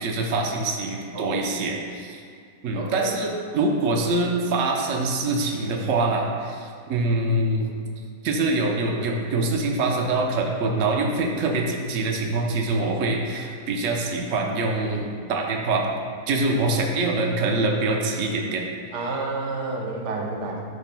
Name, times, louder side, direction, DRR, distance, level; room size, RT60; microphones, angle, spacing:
voice 1, 0.0-2.2 2.6-7.7 8.2-15.0 15.3-15.9 16.3-18.7, right 2 dB, 60° right, 0 dB, 1.1 m, -24 dB
voice 2, 2.7-3.1 18.9-20.6, right 3 dB, 85° right, 0 dB, 1.5 m, -30 dB
11.5 x 6.3 x 2.2 m, 2.2 s
omnidirectional pair, 1.7 m